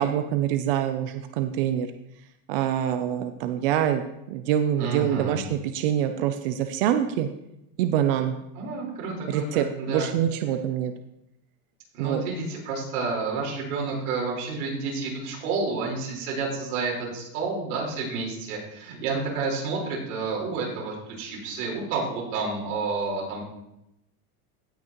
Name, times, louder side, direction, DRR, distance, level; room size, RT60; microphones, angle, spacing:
voice 1, 0.0-1.9 2.5-4.0 4.3-7.3 7.8-8.3 9.3-10.9 12.0-12.2, right 10 dB, 40° right, 7 dB, 0.4 m, -25 dB
voice 2, 4.8-5.4 8.5-10.1 11.9-23.4, right 4 dB, 75° right, -3 dB, 4.3 m, -30 dB
16.5 x 6.2 x 2.9 m, 0.84 s
supercardioid pair, 180°, 44 cm